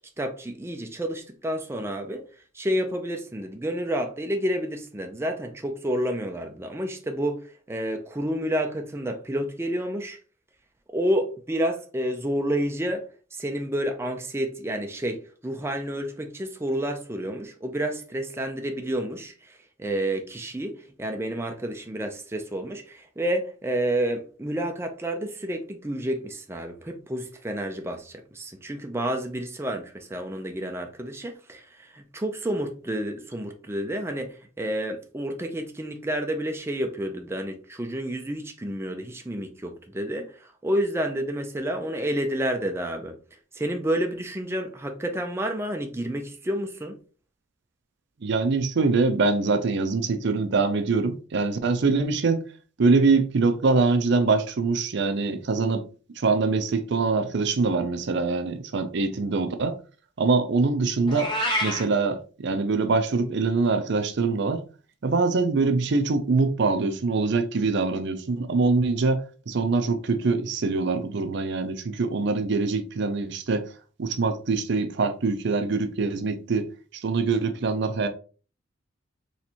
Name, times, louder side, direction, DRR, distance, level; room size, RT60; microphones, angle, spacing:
voice 1, 0.2-2.2 2.5-10.2 10.9-13.1 13.3-43.1 43.5-46.9, right 1 dB, 15° right, 0.5 m, -30 dB
voice 2, 48.2-52.5 52.8-55.8 56.2-59.8 60.2-61.3 61.6-64.6 65.0-73.7 74.0-76.7 76.9-78.1, right 3 dB, 60° right, 0.5 m, -24 dB
Meow, 61.1-61.8, equal, 25° left, 1.0 m, -26 dB
4.2 x 3.2 x 2.9 m
head